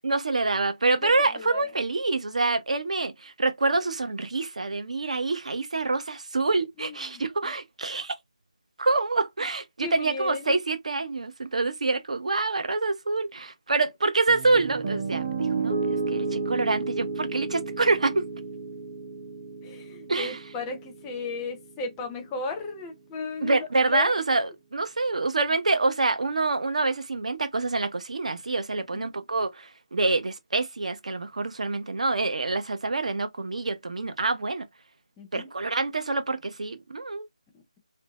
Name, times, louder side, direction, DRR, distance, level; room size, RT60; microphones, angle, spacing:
voice 1, 0.0-8.2 8.8-15.2 15.6-18.3 20.1-20.4 23.4-34.7 35.3-37.3, right 3 dB, 70° right, 0.7 m, -26 dB
voice 2, 1.0-1.6 6.8-7.5 9.8-10.6 19.6-24.2 28.9-29.1 35.2-35.5 37.5-37.8, left 4 dB, 10° left, 0.5 m, -35 dB
Piano, 14.3-22.4, right 4 dB, 35° right, 0.9 m, -32 dB
2.6 x 2.1 x 2.8 m
figure-of-eight pair, 165°, 4 cm